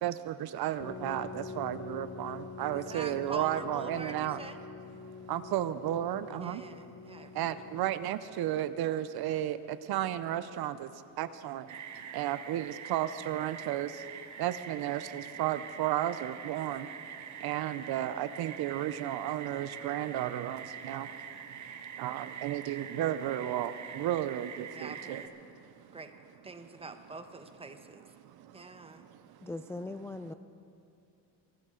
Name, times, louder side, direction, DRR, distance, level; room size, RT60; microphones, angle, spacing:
voice 1, 0.0-4.4 5.3-6.6 7.3-25.2 25.5-26.0 28.2-29.5, right 12 dB, 70° right, 13 dB, 0.7 m, -34 dB
sound 1, 0.8-8.3, left 4 dB, 40° left, 2.9 m, -45 dB
voice 2, 2.7-4.6 6.3-7.3 24.7-25.3 25.9-26.1 26.4-28.1 28.5-29.1, right 3 dB, 15° right, 8 dB, 1.0 m, -44 dB
sound 2, 11.7-25.3, right 8 dB, 45° right, 1.0 m, -45 dB
voice 3, 29.4-30.3, left 2 dB, 5° left, 8 dB, 0.3 m, -39 dB
23.0 x 12.5 x 3.8 m, 2.7 s
cardioid pair, 100°, 40 cm